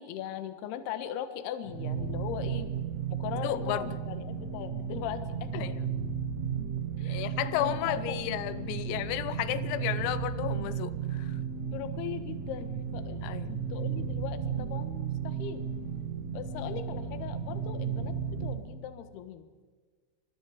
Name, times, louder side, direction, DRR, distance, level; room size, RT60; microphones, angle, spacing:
voice 1, 0.0-2.7 3.1-5.6 7.0-7.3 7.6-8.3 11.7-15.7 16.3-19.6, left 10 dB, 65° left, 9 dB, 2.9 m, -39 dB
sound 1, 1.7-18.7, right 7 dB, 65° right, 1.7 m, -34 dB
voice 2, 3.4-3.9 5.5-5.8 7.1-11.4 13.2-13.6 16.6-16.7, left 12 dB, 85° left, 14 dB, 3.6 m, -33 dB
27.5 x 25.0 x 5.0 m, 1.5 s
omnidirectional pair, 5.9 m